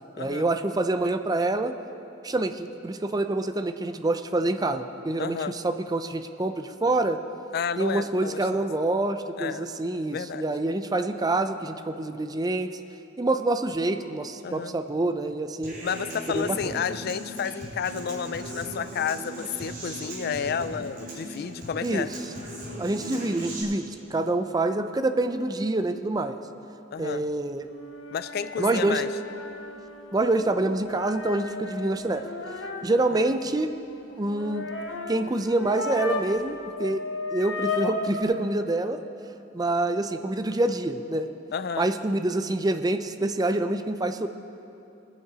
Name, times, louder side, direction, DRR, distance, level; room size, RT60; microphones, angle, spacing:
voice 1, 0.2-1.7 2.2-7.2 7.8-12.8 13.2-15.8 16.3-16.8 21.8-22.1 22.8-26.4 27.0-27.7 28.6-29.0 30.1-32.2 32.8-33.7 34.2-34.7 35.1-37.0 37.3-39.0 39.5-41.3 41.8-44.3, right 2 dB, 20° right, 8 dB, 0.5 m, -26 dB
voice 2, 5.2-5.5 7.5-8.7 9.4-9.7 10.1-10.5 14.4-14.7 15.8-22.1 26.9-27.2 28.1-29.1 33.1-33.3 41.5-41.9, left 7 dB, 55° left, 14 dB, 0.4 m, -31 dB
Human voice / Acoustic guitar, 15.6-23.6, right 1 dB, 45° right, 3.5 m, -38 dB
sound 1, 27.6-36.4 36.7-38.2, left 3 dB, 90° left, 1.1 m, -35 dB
20.5 x 7.5 x 4.9 m, 2.8 s
head